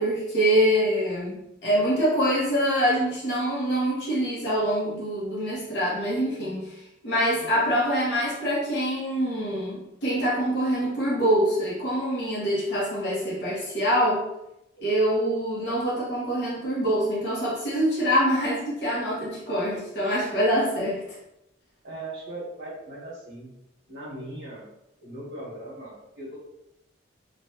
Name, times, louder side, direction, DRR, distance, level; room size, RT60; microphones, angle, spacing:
voice 1, 0.0-14.2 14.8-21.0, equal, 60° left, -7 dB, 1.1 m, -25 dB
voice 2, 21.8-23.5 23.9-24.7 25.0-26.4, right 1 dB, 70° right, -10 dB, 1.2 m, -39 dB
3.1 x 2.5 x 2.8 m, 0.88 s
head